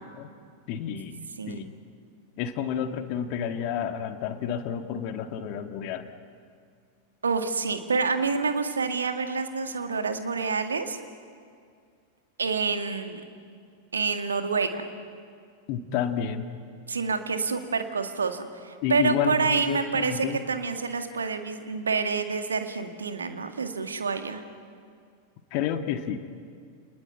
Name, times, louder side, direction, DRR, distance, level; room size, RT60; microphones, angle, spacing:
voice 1, 0.7-1.2 1.5-1.7 2.4-6.1 15.7-16.5 18.8-20.4 25.5-26.2, left 8 dB, 45° left, 6 dB, 1.8 m, -30 dB
voice 2, 1.4-1.7 7.2-11.0 12.4-13.2 13.9-14.9 16.9-24.4, right 4 dB, 70° right, 6 dB, 2.0 m, -28 dB
28.5 x 20.0 x 9.2 m, 2.2 s
figure-of-eight pair, 90°, 0 cm